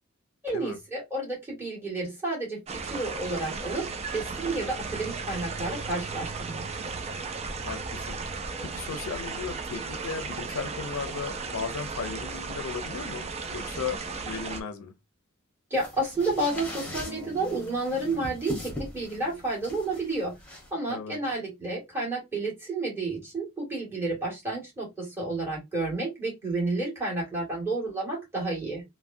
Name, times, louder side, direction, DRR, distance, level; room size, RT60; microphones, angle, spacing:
voice 1, 0.4-2.6 2.9-6.6 15.7-20.3 20.7-28.8, right 2 dB, 10° right, 1.8 m, -31 dB
sound 1, 2.7-14.6, right 4 dB, 30° right, 0.4 m, -35 dB
voice 2, 7.6-8.2 8.6-14.9 20.9-21.2, left 5 dB, 85° left, 0.5 m, -36 dB
sound 2, 15.7-20.7, left 1 dB, 5° left, 1.1 m, -41 dB
sound 3, 16.1-21.1 21.6-21.7, equal, 75° right, 0.9 m, -48 dB
3.4 x 2.1 x 2.5 m
head